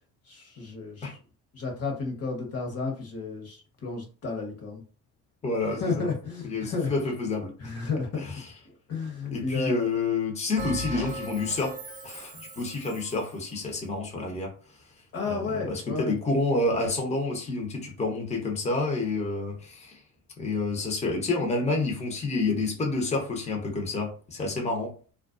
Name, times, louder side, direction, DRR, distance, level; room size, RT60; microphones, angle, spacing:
voice 1, 0.3-1.2 1.5-4.8 5.8-6.9 7.6-8.2 8.9-9.9 15.1-16.2, left 4 dB, 40° left, 1 dB, 1.1 m, -32 dB
voice 2, 5.4-6.1 6.4-7.5 8.2-8.5 9.3-11.7 12.0-14.5 15.2-20.0 20.4-24.9, left 3 dB, 15° left, 1 dB, 0.8 m, -29 dB
Bell, 10.6-13.4, right 1 dB, 20° right, 1.0 m, -38 dB
2.4 x 2.2 x 2.5 m, 0.38 s
supercardioid pair, 80°, 38 cm